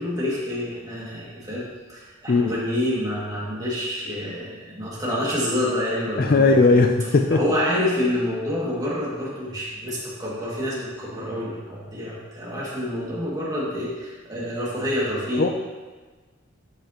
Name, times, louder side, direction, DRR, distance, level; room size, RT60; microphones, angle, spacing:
voice 1, 0.0-6.8 7.3-15.5, left 1 dB, 15° right, -7 dB, 2.1 m, -27 dB
voice 2, 6.2-7.4 15.4-15.5, left 3 dB, 40° left, 4 dB, 0.4 m, -18 dB
12.5 x 5.6 x 2.9 m, 1.3 s
head